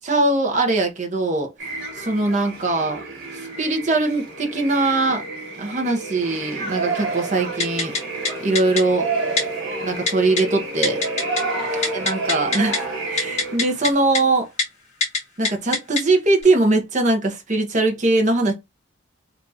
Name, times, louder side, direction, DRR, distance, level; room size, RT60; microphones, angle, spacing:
voice 1, 0.0-1.5 2.0-3.0 3.6-5.2 5.6-7.9 8.4-9.1 9.8-11.0 11.9-14.5 15.4-18.5, right 2 dB, 35° right, 0.9 m, -21 dB
sound 1, 1.6-13.6, right 1 dB, 55° right, 1.7 m, -33 dB
Yell, 6.2-13.9, right 4 dB, 70° right, 1.5 m, -30 dB
Typing, 7.6-8.0 8.2-8.3 8.5-8.8 9.4-9.5 10.1-10.4 10.8-11.4 11.7-12.8 13.2-13.9 14.1-14.2 14.6-14.7 15.0-15.2 15.4-16.0 16.4-16.5, left 4 dB, 35° left, 1.7 m, -22 dB
3.6 x 2.8 x 2.7 m
head